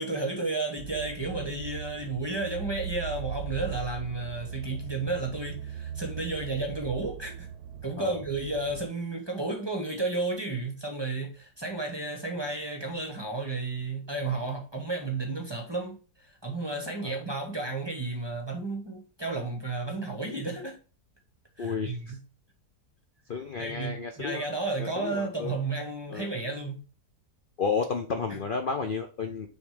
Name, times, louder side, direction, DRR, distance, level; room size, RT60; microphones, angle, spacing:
voice 1, 0.0-7.5 7.8-20.8 21.6-22.2 23.6-26.8 28.3-28.4, right 3 dB, 20° right, 0.9 m, -32 dB
sound 1, 0.8-8.9, right 9 dB, 75° right, 1.1 m, -39 dB
voice 2, 21.6-22.2 23.3-24.4 24.8-25.5 26.1-26.3 27.6-29.5, left 5 dB, 60° left, 0.5 m, -32 dB
6.3 x 3.3 x 4.9 m
omnidirectional pair, 1.8 m